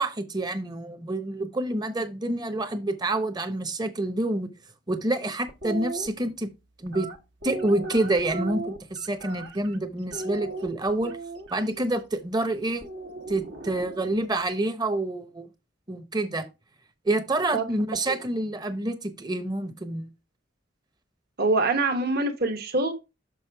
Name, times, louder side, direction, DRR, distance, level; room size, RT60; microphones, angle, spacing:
voice 1, 0.0-4.5 4.9-6.5 6.8-7.1 7.4-11.1 11.5-12.8 13.3-15.5 15.9-16.5 17.0-20.1, right 2 dB, 20° right, 0.8 m, -27 dB
sound 1, 5.5-6.1 6.9-9.8 10.1-11.6 12.8-14.2, right 2 dB, 75° right, 1.3 m, -36 dB
voice 2, 21.4-22.9, right 2 dB, 55° right, 1.1 m, -24 dB
6.3 x 6.1 x 3.4 m
head